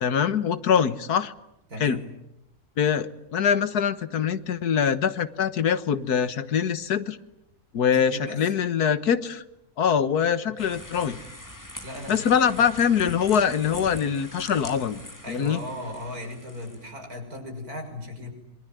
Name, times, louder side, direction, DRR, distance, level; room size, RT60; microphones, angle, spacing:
voice 1, 0.0-1.3 1.8-2.0 2.8-7.2 7.7-9.4 9.8-11.2 12.1-15.0 15.3-15.6, left 7 dB, 85° left, 13 dB, 1.8 m, -23 dB
voice 2, 1.7-2.1 7.9-8.5 10.4-10.6 11.8-12.2 15.2-18.3, left 1 dB, 75° right, 3 dB, 6.8 m, -37 dB
sound 1, 10.6-16.9, left 1 dB, 10° left, 3.5 m, -43 dB
27.0 x 23.5 x 9.3 m, 0.84 s
omnidirectional pair, 1.6 m